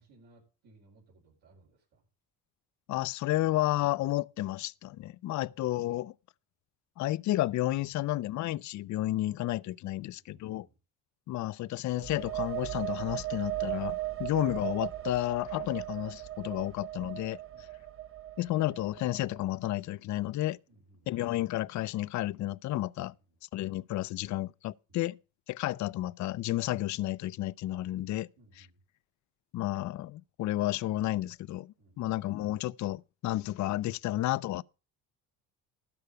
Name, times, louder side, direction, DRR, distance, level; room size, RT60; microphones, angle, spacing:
voice 1, 0.0-2.0 5.4-5.6 7.9-8.0 10.0-10.8 14.0-14.2 17.5-17.7 20.7-21.1 24.9-25.0 28.4-28.8 31.8-32.1, right 2 dB, 75° right, 5.0 m, -62 dB
voice 2, 2.9-6.1 7.0-10.7 11.3-17.4 18.4-20.6 21.1-23.1 23.5-25.2 25.5-28.3 28.6-28.7 29.5-34.6, left 15 dB, 50° left, 0.5 m, -32 dB
sound 1, 11.9-19.5, right 14 dB, 35° right, 0.7 m, -37 dB
12.5 x 4.5 x 8.2 m
supercardioid pair, 80°, 39 cm